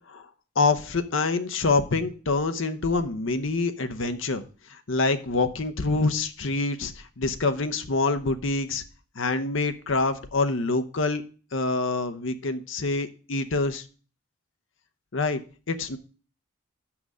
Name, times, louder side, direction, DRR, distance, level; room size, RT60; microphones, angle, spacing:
voice 1, 0.6-4.4 4.7-8.8 9.2-11.2 11.5-13.8 15.1-15.4 15.7-16.0, left 3 dB, 60° left, 10 dB, 0.8 m, -26 dB
6.6 x 5.9 x 6.1 m, 0.37 s
head